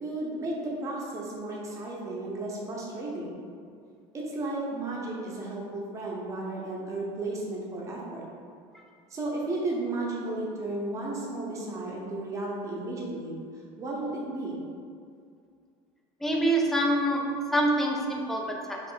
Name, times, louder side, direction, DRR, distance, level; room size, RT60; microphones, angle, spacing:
voice 1, 0.0-3.4 4.1-8.2 9.1-13.3 13.8-14.5, right 2 dB, 25° right, -4 dB, 0.7 m, -33 dB
voice 2, 16.2-17.3 17.5-18.8, right 1 dB, ahead, -1 dB, 0.3 m, -25 dB
3.0 x 2.4 x 3.7 m, 2.3 s
cardioid pair, 140°, 13 cm